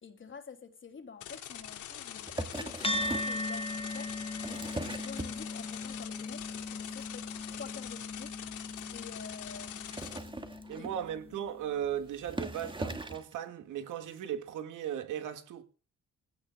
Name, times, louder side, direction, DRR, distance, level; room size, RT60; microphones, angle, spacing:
voice 1, 0.0-10.1 10.8-11.0, left 5 dB, 40° left, 3.4 m, -48 dB
sound 1, 1.2-10.2, left 10 dB, 75° left, 3.4 m, -44 dB
sound 2, 2.3-3.4 4.2-5.8 6.2-6.6 6.9-7.0 7.3-7.4 7.6-7.7 8.0-8.1 8.7-8.8 9.7-11.1 11.8-11.9 12.2-13.3 14.1-14.2, right 2 dB, 15° right, 2.3 m, -39 dB
sound 3, 2.8-11.5, left 2 dB, 20° left, 1.4 m, -39 dB
voice 2, 10.7-15.6, right 10 dB, 80° right, 2.4 m, -37 dB
21.5 x 17.0 x 2.5 m
cardioid pair, 90°, 30 cm